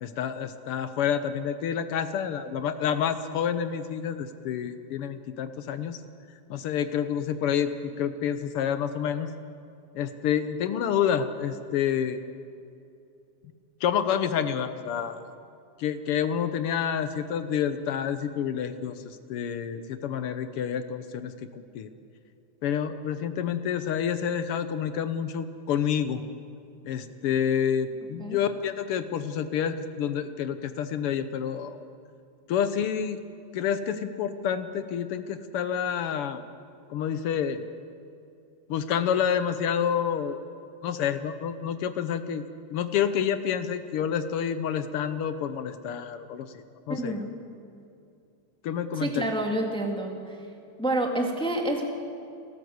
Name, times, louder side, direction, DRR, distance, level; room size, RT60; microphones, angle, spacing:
voice 1, 0.0-6.0 6.5-9.3 9.9-12.2 13.8-15.2 15.8-21.9 22.6-26.2 26.8-31.8 32.5-33.2 33.5-36.4 36.9-37.6 38.7-40.4 40.8-42.4 42.7-47.2 48.6-49.3, left 8 dB, 70° left, 11 dB, 1.3 m, -28 dB
voice 2, 46.9-47.3 48.9-50.4 50.8-51.8, right 1 dB, ahead, 2 dB, 1.7 m, -28 dB
29.5 x 13.5 x 7.9 m, 2.5 s
omnidirectional pair, 3.5 m